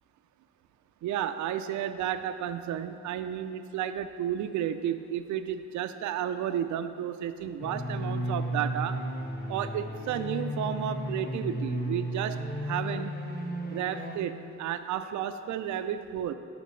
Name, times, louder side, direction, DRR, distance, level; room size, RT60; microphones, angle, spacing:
voice 1, 1.0-9.0 9.5-13.1 13.7-16.3, right 10 dB, 75° right, 10 dB, 0.5 m, -32 dB
sound 1, 7.6-14.2, equal, 30° left, 1.3 m, -34 dB
12.0 x 6.4 x 3.2 m, 2.5 s
cardioid pair, 90°, 30 cm